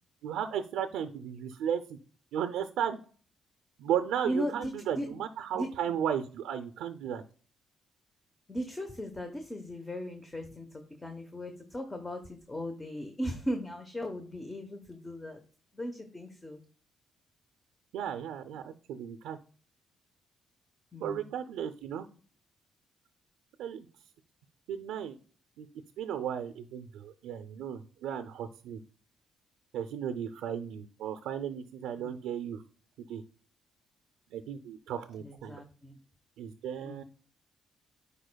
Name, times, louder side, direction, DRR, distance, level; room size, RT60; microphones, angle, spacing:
voice 1, 0.2-2.0 2.3-3.0 3.8-7.2 17.9-19.4 21.0-22.1 23.6-23.9 24.7-25.2 25.6-25.7 26.0-28.8 29.7-32.6 33.1-33.2 34.3-35.6 36.4-37.0, right 9 dB, 90° right, 8 dB, 0.5 m, -35 dB
voice 2, 4.2-4.6 4.9-5.1 5.5-5.7 8.5-15.4 15.7-16.6 20.9-21.3 32.0-32.2 35.2-36.0 36.8-37.0, equal, 15° left, 5 dB, 0.9 m, -37 dB
10.0 x 4.2 x 2.2 m, 0.41 s
cardioid pair, 90°, 0 cm